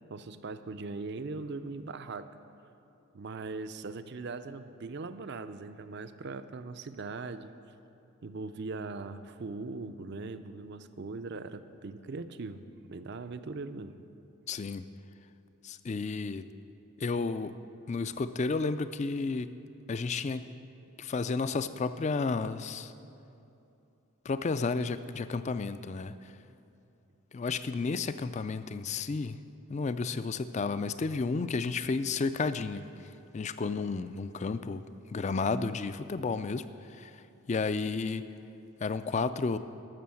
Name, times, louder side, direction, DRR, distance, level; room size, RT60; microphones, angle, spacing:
voice 1, 0.1-2.3 3.1-7.5 8.2-14.0, right 3 dB, 50° right, 11 dB, 0.5 m, -40 dB
voice 2, 14.5-14.8 15.6-16.4 17.0-17.6 17.9-19.5 19.9-20.5 21.0-22.9 24.3-26.1 27.3-29.4 29.7-32.9 33.3-34.8 35.1-36.6 36.9-37.2 37.5-38.3 38.8-39.6, left 4 dB, 30° left, 13 dB, 0.3 m, -32 dB
12.5 x 6.8 x 7.6 m, 2.8 s
head